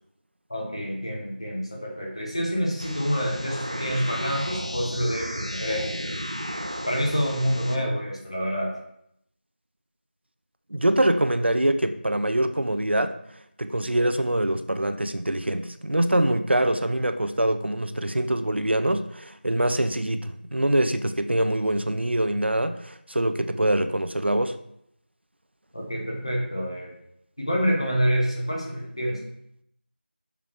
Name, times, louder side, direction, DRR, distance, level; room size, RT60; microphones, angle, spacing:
voice 1, 0.5-6.0 6.9-8.8 25.7-26.9 27.4-29.2, equal, 30° left, 1.3 m, -27 dB
sound 1, 2.8-7.8, equal, 35° right, 0.6 m, -34 dB
voice 2, 10.7-13.2 13.6-24.6, right 1 dB, 75° right, 0.6 m, -24 dB
6.9 x 6.1 x 3.2 m
figure-of-eight pair, 180°, 6 cm